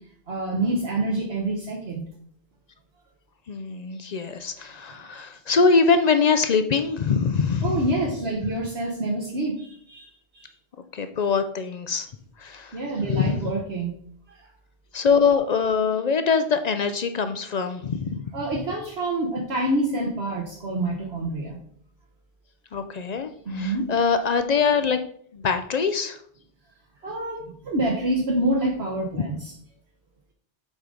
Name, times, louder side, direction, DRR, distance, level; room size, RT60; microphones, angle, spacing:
voice 1, 0.3-2.0 7.6-10.5 12.7-13.9 14.3-14.4 18.3-21.6 23.5-23.9 27.0-29.5, right 2 dB, 65° right, -1 dB, 1.3 m, -27 dB
voice 2, 3.5-7.8 10.9-12.1 12.4-12.8 13.1-13.5 14.9-18.2 22.7-25.0 25.3-26.2 29.2-29.3, left 5 dB, 55° left, 9 dB, 0.5 m, -23 dB
7.4 x 4.9 x 3.8 m, 0.62 s
omnidirectional pair, 1.2 m